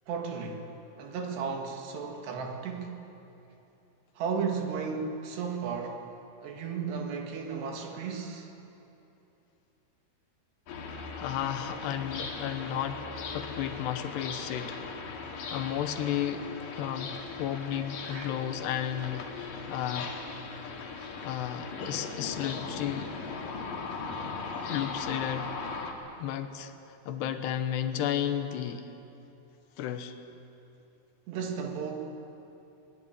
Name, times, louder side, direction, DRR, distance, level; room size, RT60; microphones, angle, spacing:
voice 1, 0.1-0.7 1.0-3.1 4.2-6.1 6.4-8.5 18.0-18.3 23.0-23.5 27.1-27.3 31.3-31.9, right 5 dB, 80° right, 2 dB, 4.0 m, -35 dB
sound 1, 10.7-25.9, left 4 dB, 60° left, 3.4 m, -38 dB
voice 2, 11.2-13.0 13.3-14.8 15.5-16.5 16.7-20.2 21.2-23.1 24.7-25.5 26.2-26.7 27.1-28.9 29.8-30.1, left 10 dB, 80° left, 7 dB, 3.1 m, -33 dB
22.0 x 19.0 x 9.0 m, 2.9 s
omnidirectional pair, 4.8 m